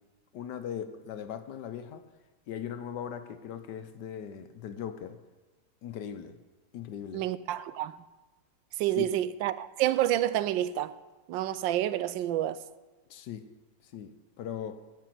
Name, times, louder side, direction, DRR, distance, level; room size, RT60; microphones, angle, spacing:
voice 1, 0.3-2.0 2.5-5.2 5.8-6.4 6.7-7.2 9.0-9.1 13.1-13.4 13.9-14.8, left 9 dB, 70° left, 1.4 m, -39 dB
voice 2, 7.1-7.9 8.8-10.9 11.3-12.6, right 12 dB, 85° right, 1.3 m, -28 dB
14.0 x 6.1 x 7.7 m
omnidirectional pair, 2.0 m